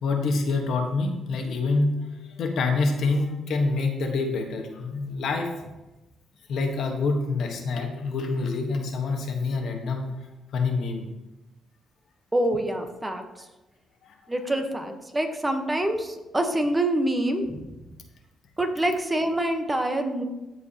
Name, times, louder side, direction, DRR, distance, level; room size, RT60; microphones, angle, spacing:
voice 1, 0.0-5.5 6.5-10.1 10.5-11.1, left 3 dB, 70° left, 3 dB, 1.2 m, -26 dB
voice 2, 12.3-13.2 14.3-17.7 18.6-20.2, right 1 dB, 15° right, 5 dB, 1.0 m, -26 dB
14.0 x 4.7 x 2.9 m, 1.0 s
cardioid pair, 90°, 0 cm